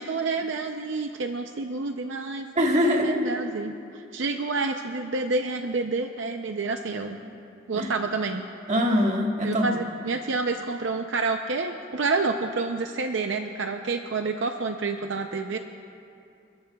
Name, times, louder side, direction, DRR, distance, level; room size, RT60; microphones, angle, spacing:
voice 1, 0.0-7.2 7.7-8.4 9.4-15.6, right 3 dB, 70° right, 5 dB, 0.6 m, -29 dB
voice 2, 2.6-3.3 7.7-7.9 8.7-9.7, equal, 40° right, 1 dB, 1.5 m, -23 dB
30.0 x 14.0 x 2.3 m, 2.5 s
head